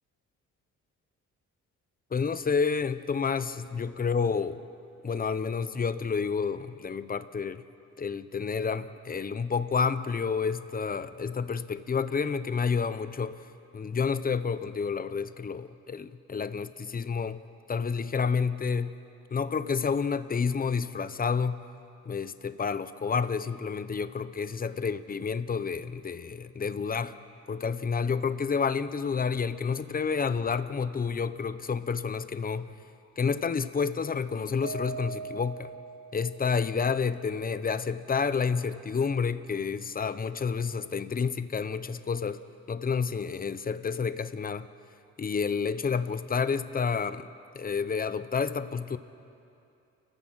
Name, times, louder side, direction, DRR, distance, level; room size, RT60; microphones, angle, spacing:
voice 1, 2.1-4.6 5.0-7.6 8.0-13.4 13.7-17.4 17.7-18.9 19.3-21.6 22.1-27.1 27.5-32.7 33.2-35.7 36.1-42.4 42.7-44.7 45.2-49.0, left 5 dB, 30° left, 13 dB, 0.9 m, -29 dB
Mallet percussion, 34.6-36.9, right 4 dB, 60° right, 0.9 m, -40 dB
29.5 x 15.0 x 6.3 m, 2.7 s
cardioid pair, 90°, 30 cm